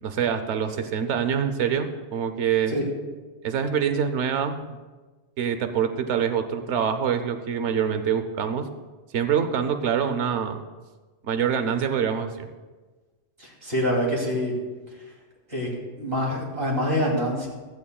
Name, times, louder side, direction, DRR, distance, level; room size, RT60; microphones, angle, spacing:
voice 1, 0.0-2.7 3.4-4.8 5.4-8.7 9.1-10.6 11.2-12.5, right 7 dB, 80° right, 8 dB, 1.1 m, -25 dB
voice 2, 13.4-14.5 15.5-15.7 16.0-17.5, equal, 55° right, -2 dB, 3.1 m, -25 dB
15.5 x 13.5 x 2.3 m, 1.3 s
omnidirectional pair, 1.2 m